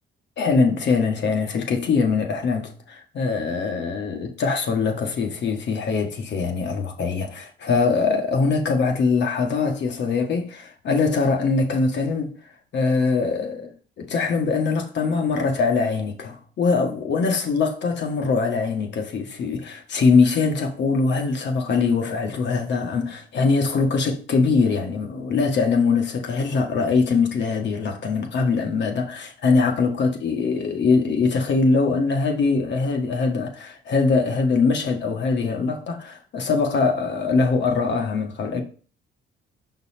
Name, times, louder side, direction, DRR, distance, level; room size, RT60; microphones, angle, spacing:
voice 1, 0.4-12.3 12.7-13.7 14.0-38.6, left 4 dB, 65° left, 1.4 m, -22 dB
6.0 x 4.0 x 4.2 m
cardioid pair, 90°, 20 cm